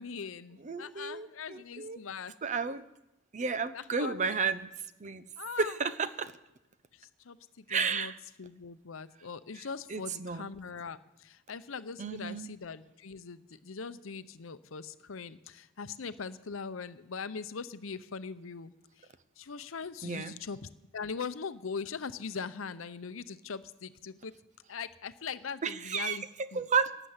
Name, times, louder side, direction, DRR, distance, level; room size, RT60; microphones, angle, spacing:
voice 1, 0.0-2.3 3.7-4.4 5.4-5.8 6.9-8.1 8.4-19.1 19.4-20.6 20.9-24.3 24.7-26.2 26.5-26.7, left 5 dB, 75° left, 13 dB, 0.7 m, -41 dB
voice 2, 0.6-2.0 2.4-2.8 3.3-4.7 5.0-5.2 5.6-6.3 7.7-8.2 9.9-10.5 12.0-12.5 20.0-20.3 25.6-26.9, right 5 dB, 35° right, 13 dB, 0.6 m, -32 dB
12.0 x 9.9 x 8.0 m, 0.94 s
head